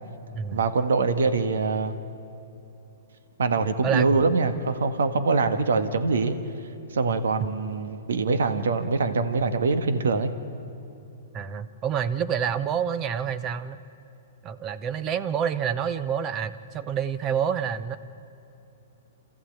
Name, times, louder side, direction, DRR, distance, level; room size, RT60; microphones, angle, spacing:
voice 1, 0.5-2.0 3.4-6.3 6.9-10.3, right 4 dB, 80° right, 9 dB, 1.5 m, -24 dB
voice 2, 3.8-4.2 11.3-13.8 14.4-18.0, right 8 dB, 30° right, 13 dB, 0.9 m, -28 dB
28.0 x 14.0 x 8.9 m, 2.8 s
hypercardioid pair, 130°, 0 cm